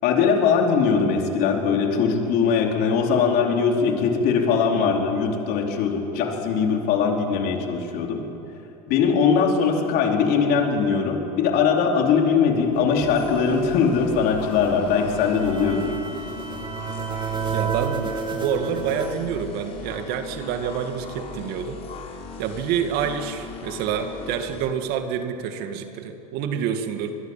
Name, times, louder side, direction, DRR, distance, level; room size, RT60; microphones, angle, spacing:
voice 1, 0.0-8.2 8.9-15.9, left 6 dB, 55° left, 1 dB, 4.4 m, -21 dB
sound 1, 12.6-19.1, right 6 dB, 25° right, 2.2 m, -32 dB
sound 2, 13.0-24.7, left 5 dB, 35° left, 4.2 m, -38 dB
voice 2, 17.5-21.8 22.4-27.1, right 8 dB, 55° right, 6 dB, 2.2 m, -28 dB
24.0 x 22.0 x 7.6 m, 3.0 s
hypercardioid pair, 100°, 19 cm